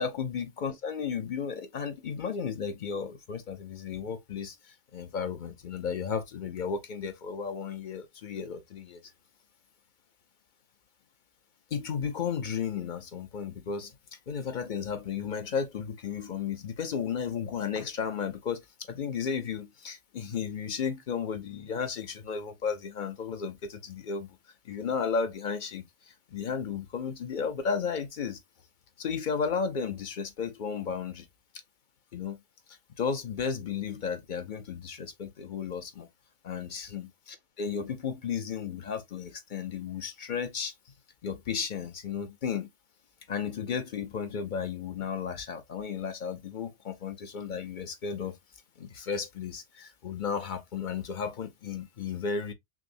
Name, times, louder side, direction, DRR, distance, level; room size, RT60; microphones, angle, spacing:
voice 1, 0.0-9.1 11.7-14.0 14.3-18.6 18.9-24.3 24.6-28.4 29.0-31.3 32.1-32.4 33.0-36.1 36.4-40.7 41.2-42.7 43.3-48.3 48.8-52.5, left 6 dB, 50° left, 0.7 m, -34 dB
6.0 x 2.0 x 2.5 m
omnidirectional pair, 1.2 m